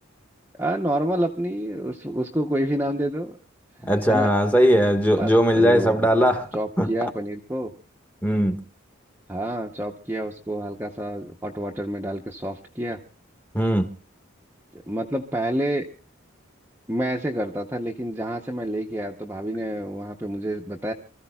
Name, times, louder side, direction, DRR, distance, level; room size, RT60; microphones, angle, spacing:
voice 1, 0.6-3.4 3.8-4.3 5.2-6.1 6.5-7.7 9.3-13.0 14.7-15.8 16.9-20.9, right 1 dB, 10° right, 0.7 m, -28 dB
voice 2, 3.9-6.9 8.2-8.6 13.5-13.9, equal, 10° left, 1.1 m, -19 dB
28.0 x 14.5 x 2.3 m
head